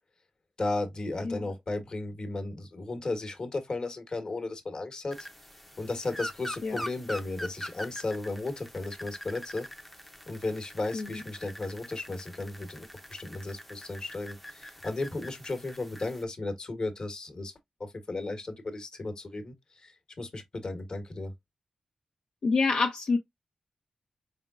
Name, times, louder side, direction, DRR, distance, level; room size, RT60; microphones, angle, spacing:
voice 1, 0.6-5.3 5.8-9.7 10.3-17.5 17.8-19.9 20.2-21.3, left 2 dB, 45° left, 1.2 m, -35 dB
sound 1, 5.1-16.2, equal, 5° left, 0.6 m, -44 dB
voice 2, 22.4-23.2, left 4 dB, 70° left, 0.7 m, -26 dB
4.6 x 3.6 x 2.4 m
wide cardioid pair, 110°, 2 cm